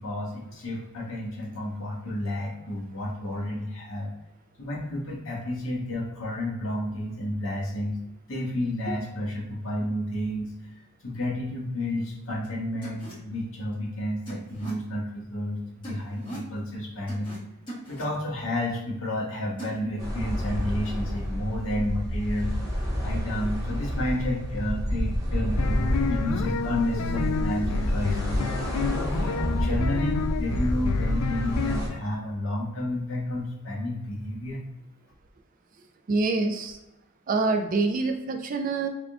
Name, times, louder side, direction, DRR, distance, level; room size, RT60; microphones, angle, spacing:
voice 1, 0.0-4.1 4.6-8.0 8.3-10.5 11.0-17.3 17.9-22.6 23.0-25.7 26.1-28.4 28.8-34.6, left 1 dB, 65° left, -2 dB, 1.0 m, -31 dB
sound 1, 12.4-12.5 12.8-13.1 14.3-14.7 15.8-16.5 17.1-17.4 17.7-18.0 19.6-19.8, right 1 dB, 20° left, 1.5 m, -39 dB
sound 2, 20.0-31.9, equal, 15° right, 1.0 m, -29 dB
sound 3, 25.6-32.0, left 5 dB, 85° left, 0.3 m, -30 dB
voice 2, 36.1-36.8 37.3-38.9, right 3 dB, 35° right, 6 dB, 0.3 m, -25 dB
3.6 x 3.5 x 2.3 m, 0.95 s
head